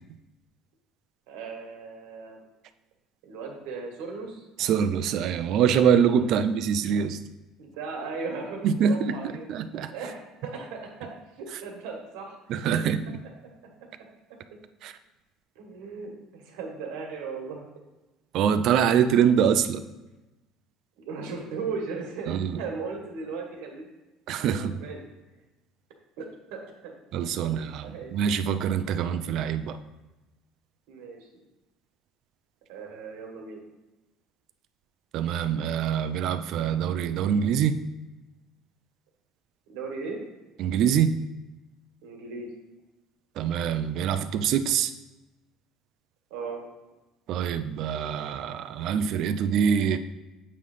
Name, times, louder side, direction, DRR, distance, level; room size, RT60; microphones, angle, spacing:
voice 1, 1.3-2.4 3.2-4.4 6.2-6.4 7.6-9.5 9.9-12.4 12.7-12.8 14.5-14.6 15.5-17.7 18.5-18.7 21.0-23.9 24.4-25.1 26.2-26.9 27.8-28.1 29.0-29.1 30.9-31.3 32.7-33.6 39.7-40.2 42.0-42.5 46.3-46.6, right 4 dB, 85° right, 1 dB, 1.6 m, -37 dB
voice 2, 4.6-7.2 8.6-9.9 12.5-13.2 14.8-15.0 18.3-19.8 22.3-22.6 24.3-24.7 27.1-29.8 35.1-37.8 40.6-41.2 43.4-44.9 47.3-50.0, right 8 dB, 55° right, 11 dB, 0.4 m, -24 dB
8.4 x 3.2 x 5.5 m, 1.1 s
cardioid pair, 140°, 0 cm